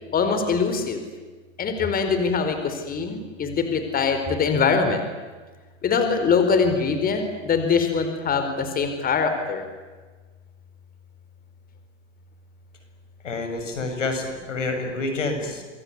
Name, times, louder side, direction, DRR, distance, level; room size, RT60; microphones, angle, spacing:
voice 1, 0.1-1.0 1.6-5.0 5.8-9.6, left 5 dB, 25° left, 7 dB, 4.5 m, -23 dB
voice 2, 13.2-15.6, left 3 dB, 90° left, 5 dB, 7.8 m, -28 dB
27.0 x 22.5 x 9.7 m, 1.3 s
hypercardioid pair, 115°, 36 cm